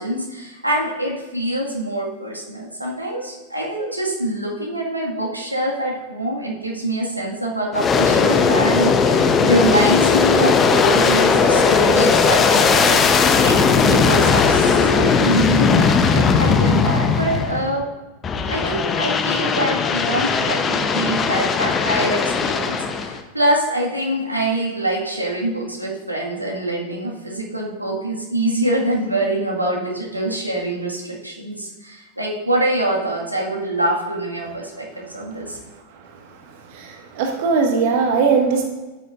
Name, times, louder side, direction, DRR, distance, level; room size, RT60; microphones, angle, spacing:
voice 1, 0.0-17.9 18.5-35.6, right 1 dB, 85° right, -3 dB, 1.9 m, -24 dB
Aircraft, 7.7-17.8 18.2-23.2, left 5 dB, 25° left, 0.8 m, -17 dB
voice 2, 36.7-38.7, right 5 dB, 50° right, 3 dB, 1.6 m, -19 dB
13.0 x 9.3 x 2.6 m, 1.2 s
figure-of-eight pair, 90°, 0 cm